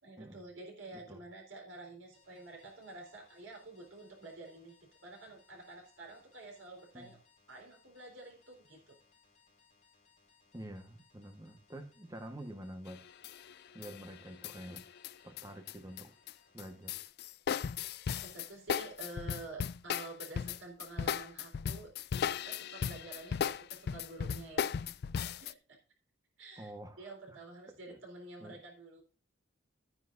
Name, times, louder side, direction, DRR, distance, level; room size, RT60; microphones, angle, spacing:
voice 1, 0.0-7.2 7.5-9.0 18.2-21.9 22.3-24.9 25.4-25.8 26.4-26.7 27.0-29.0, right 2 dB, 80° right, 1 dB, 4.0 m, -49 dB
voice 2, 0.9-1.2 6.9-7.1 10.5-13.1 13.7-14.9 15.2-16.1 16.5-17.0 26.6-27.4 27.7-28.0 28.4-28.6, right 1 dB, 20° right, 6 dB, 1.3 m, -48 dB
sound 1, 2.1-17.1, left 5 dB, 40° left, 3.7 m, -68 dB
sound 2, 12.9-13.5 13.8-16.3 16.6-25.5, left 7 dB, 55° left, 0.4 m, -36 dB
13.0 x 9.6 x 2.6 m, 0.34 s
head